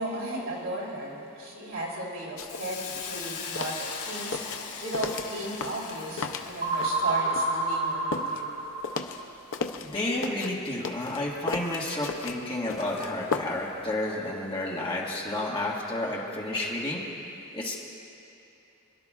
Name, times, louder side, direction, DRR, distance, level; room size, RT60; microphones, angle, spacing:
voice 1, 0.0-8.5, right 1 dB, 60° right, -5 dB, 3.2 m, -35 dB
sound 1, 2.4-2.6 3.0-7.1 7.3-9.9 10.2-13.8 14.0-14.1, left 4 dB, 60° left, 0.6 m, -35 dB
Hiss, 2.5-7.2, left 5 dB, 75° left, 1.5 m, -39 dB
voice 2, 4.9-5.3 9.0-9.1 9.8-17.0 17.5-17.8, left 1 dB, 25° left, -4 dB, 1.8 m, -31 dB
sound 2, 6.6-9.2, right 2 dB, 40° right, 2.6 m, -28 dB
26.0 x 12.0 x 2.4 m, 2.9 s
head